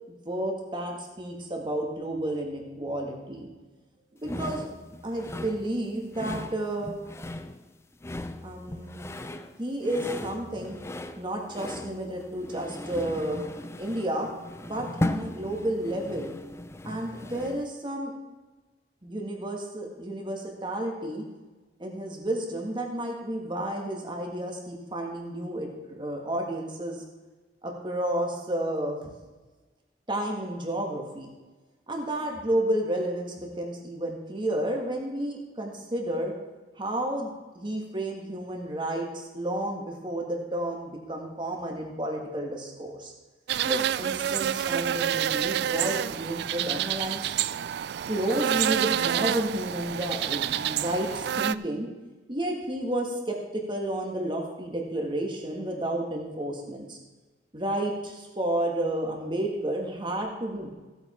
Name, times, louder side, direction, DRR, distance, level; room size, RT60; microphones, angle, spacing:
voice 1, 0.3-3.5 4.1-4.7 5.0-7.0 8.4-9.1 9.6-13.4 13.8-14.3 14.6-16.3 16.8-18.1 19.0-21.2 21.8-27.0 27.6-29.0 30.1-31.3 31.9-36.3 36.8-43.1 43.7-47.3 48.1-51.9 52.3-57.0 57.5-60.7, right 1 dB, 25° right, 1 dB, 1.9 m, -31 dB
sound 1, 4.2-17.7, left 1 dB, 15° left, 0.5 m, -37 dB
sound 2, 43.5-51.6, right 10 dB, 65° right, 0.3 m, -28 dB
16.0 x 8.0 x 4.5 m, 1.2 s
head